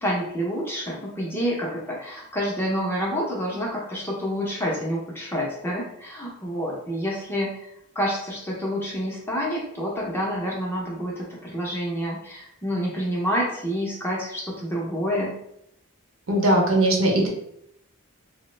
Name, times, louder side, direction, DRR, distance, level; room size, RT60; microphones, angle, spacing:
voice 1, 0.0-7.7 7.9-15.3, equal, 10° left, -4 dB, 0.5 m, -28 dB
voice 2, 16.3-17.3, right 1 dB, 65° right, -1 dB, 0.8 m, -19 dB
2.9 x 2.0 x 3.2 m, 0.75 s
head